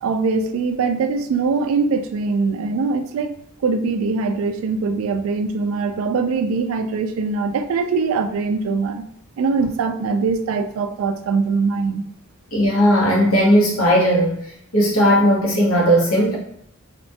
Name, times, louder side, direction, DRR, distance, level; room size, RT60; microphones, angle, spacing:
voice 1, 0.0-3.3 3.6-9.0 9.4-12.0, right 4 dB, 85° right, 9 dB, 0.3 m, -22 dB
voice 2, 12.5-14.4 14.7-16.4, equal, 80° left, -2 dB, 0.9 m, -16 dB
2.9 x 2.2 x 2.6 m, 0.69 s
head